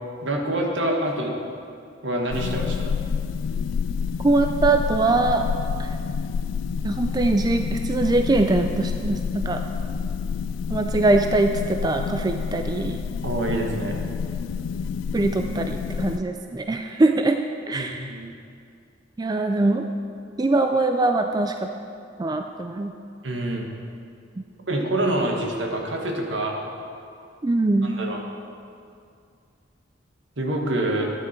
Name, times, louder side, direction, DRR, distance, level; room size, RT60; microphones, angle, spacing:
voice 1, 0.2-1.3 2.0-3.0 13.2-14.0 17.7-18.3 23.2-23.7 24.7-26.6 27.8-28.2 30.4-31.1, right 1 dB, 75° right, 1 dB, 1.5 m, -26 dB
sound 1, 2.3-16.2, left 6 dB, 85° left, 0.3 m, -28 dB
voice 2, 4.2-5.4 5.8-5.9 6.8-9.6 10.7-13.0 15.1-18.1 19.2-19.9 20.4-21.7 22.2-22.9 27.4-27.9, right 2 dB, 20° right, 5 dB, 0.4 m, -22 dB
12.5 x 9.8 x 4.4 m, 2.4 s
head